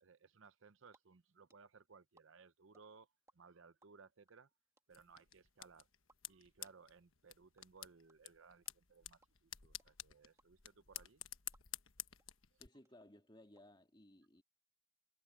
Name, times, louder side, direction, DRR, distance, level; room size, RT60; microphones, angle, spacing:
voice 1, 0.0-4.5 4.9-5.9 6.2-11.2 12.5-12.6, right 5 dB, 60° right, 0.7 m, -63 dB
sound 1, 0.8-3.3 3.6-11.9 12.2-12.3 12.5-13.6, right 2 dB, 15° right, 1.5 m, -73 dB
sound 2, 4.9-12.7, left 13 dB, 70° left, 1.2 m, -52 dB
voice 2, 12.6-14.4, left 1 dB, 20° left, 2.7 m, -61 dB
head